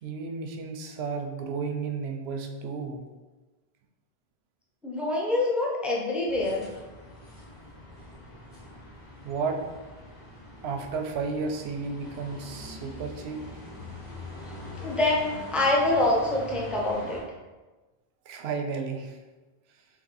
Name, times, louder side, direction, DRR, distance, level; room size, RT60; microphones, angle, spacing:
voice 1, 0.0-3.0 9.2-9.6 10.6-13.4 18.3-19.2, right 5 dB, 85° right, 4 dB, 0.8 m, -33 dB
voice 2, 4.8-6.7 14.3-17.2, left 2 dB, ahead, -2 dB, 0.4 m, -26 dB
sound 1, 6.3-17.2, left 1 dB, 30° left, 1.7 m, -43 dB
3.5 x 2.9 x 4.0 m, 1.2 s
omnidirectional pair, 1.0 m